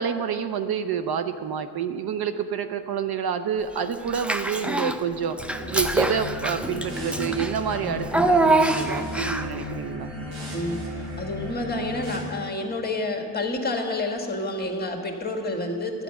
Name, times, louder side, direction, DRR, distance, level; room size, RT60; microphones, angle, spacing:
voice 1, 0.0-5.4 5.7-10.1, right 7 dB, 55° right, 9 dB, 0.6 m, -28 dB
Child speech kid speaking / Bathtub (filling or washing), 4.1-5.0 5.4-9.6, right 2 dB, 5° right, 0.4 m, -24 dB
sound 1, 5.3-12.2, left 1 dB, 85° right, 2.9 m, -35 dB
voice 2, 10.5-16.0, left 2 dB, 20° left, 2 dB, 1.6 m, -29 dB
11.0 x 9.0 x 5.9 m, 2.3 s
cardioid pair, 75°, 45 cm